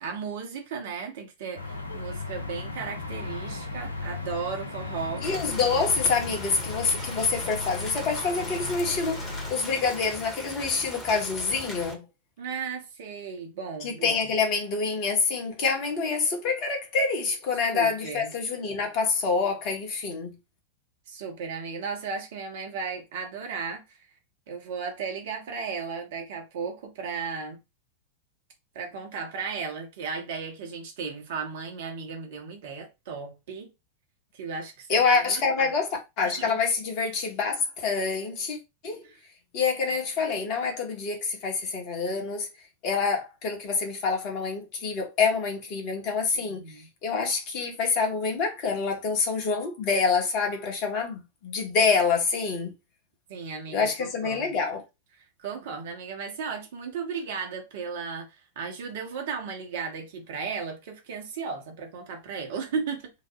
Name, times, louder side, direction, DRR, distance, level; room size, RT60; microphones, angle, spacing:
voice 1, 0.0-5.2 12.4-14.3 17.6-18.3 21.1-24.0 24.5-27.6 28.7-33.7 34.3-35.7 36.2-36.5 39.0-39.2 46.3-46.9 53.3-54.6 55.4-58.3 58.6-63.1, right 5 dB, 55° right, 0.9 m, -35 dB
sound 1, 1.6-9.5, left 3 dB, 80° left, 0.6 m, -36 dB
voice 2, 5.2-12.0 13.8-20.3 34.9-38.6 38.8-39.1 39.5-42.5 42.8-46.6 47.0-52.7 53.7-54.8, left 5 dB, 40° left, 1.1 m, -26 dB
Rain, 5.2-11.9, left 1 dB, 15° left, 1.0 m, -40 dB
2.9 x 2.1 x 3.0 m
figure-of-eight pair, 90°, 0 cm